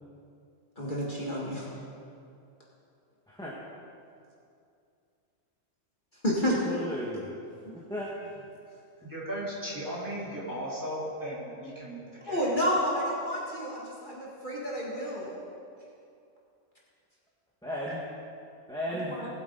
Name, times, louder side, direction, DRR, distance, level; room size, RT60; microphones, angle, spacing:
voice 1, 0.8-1.7 6.2-6.6 12.3-15.4 19.1-19.3, equal, 40° left, -5 dB, 1.9 m, -30 dB
voice 2, 3.3-3.6 6.4-8.5 17.6-18.1 18.7-19.2, equal, 5° left, -7 dB, 1.4 m, -36 dB
voice 3, 9.0-12.6, equal, 15° right, -8 dB, 3.5 m, -36 dB
20.0 x 8.2 x 3.9 m, 2.5 s
omnidirectional pair, 1.3 m